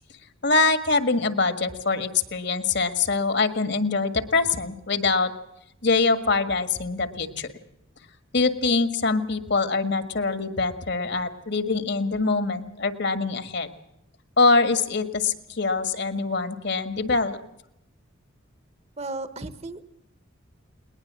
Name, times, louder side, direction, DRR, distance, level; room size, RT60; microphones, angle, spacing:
voice 1, 0.4-5.3 5.8-7.5 8.3-13.7 14.4-17.4, left 3 dB, 55° left, 11 dB, 1.7 m, -24 dB
voice 2, 19.0-19.9, right 2 dB, 30° right, 13 dB, 1.2 m, -34 dB
21.0 x 20.0 x 7.5 m, 0.82 s
head